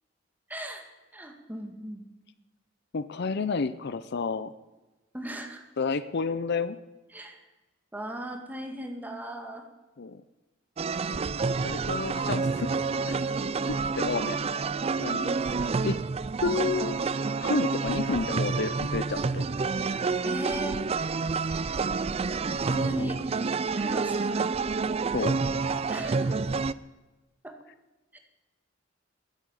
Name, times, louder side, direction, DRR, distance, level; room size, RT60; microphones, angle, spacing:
voice 1, 0.5-0.9 1.1-2.0 5.1-5.6 7.1-7.4 7.9-9.7 10.8-11.1 15.0-15.3 20.2-20.8 22.7-23.2 23.8-24.6 25.9-26.5 27.4-27.6 28.1-28.2, right 1 dB, 10° right, 3 dB, 1.9 m, -37 dB
voice 2, 2.9-4.5 5.8-6.8 10.0-10.2 11.6-12.7 13.1-13.3 13.7-14.4 15.0-15.3 15.8-16.0 16.4-17.0 17.4-19.4 23.0-23.1 25.1-25.4, left 4 dB, 60° left, 14 dB, 0.6 m, -30 dB
sound 1, 10.8-26.7, right 4 dB, 30° right, 0.4 m, -28 dB
13.5 x 10.5 x 9.2 m, 1.1 s
head